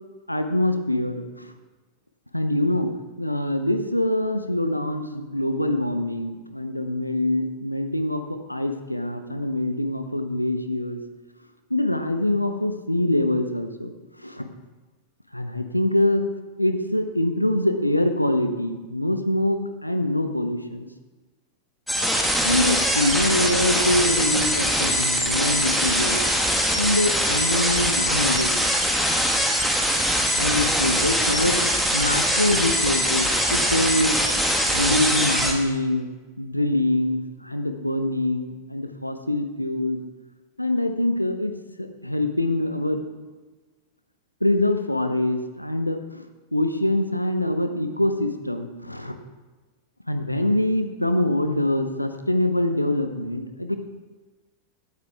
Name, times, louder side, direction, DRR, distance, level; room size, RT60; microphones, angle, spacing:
voice 1, 0.3-1.5 2.3-2.9 3.2-11.0 11.7-13.9 14.2-14.5 15.3-16.3 16.6-20.9 22.4-26.2 26.8-28.5 29.0-29.1 30.4-31.6 31.9-34.2 34.7-36.1 36.4-40.0 40.6-43.0 44.4-46.2 46.5-49.2 50.1-53.8, left 1 dB, 90° left, 8 dB, 0.8 m, -24 dB
sound 1, 21.9-35.5, equal, ahead, 1.6 m, -22 dB
15.5 x 9.2 x 3.5 m, 1.2 s
figure-of-eight pair, 90°, 0 cm